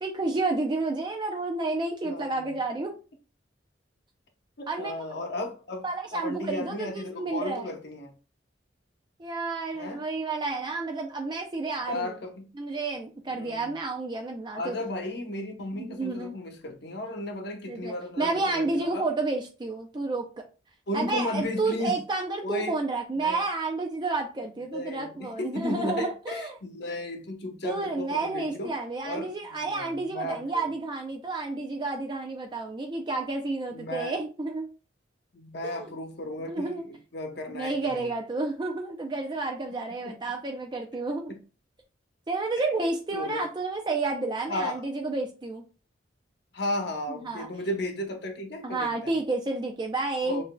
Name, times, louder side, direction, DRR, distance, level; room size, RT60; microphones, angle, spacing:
voice 1, 0.0-2.9 4.7-5.1 5.8-7.7 9.2-12.1 12.6-14.8 15.8-16.3 17.7-20.2 20.9-26.6 27.6-34.7 35.6-35.9 36.5-36.8 37.5-41.3 42.3-45.6 47.1-47.5 48.6-50.4, right 3 dB, 25° right, 0.4 m, -30 dB
voice 2, 2.0-2.6 4.6-5.9 6.1-8.1 9.7-10.0 11.8-12.4 13.3-13.7 14.5-19.0 20.9-22.0 22.4-22.7 23.1-23.4 24.7-28.7 29.0-30.7 33.7-34.2 35.3-38.1 40.0-40.1 41.3-41.4 42.8-43.5 44.5-44.9 46.5-49.1 50.2-50.4, left 1 dB, 60° left, 0.9 m, -34 dB
6.6 x 2.6 x 2.2 m
head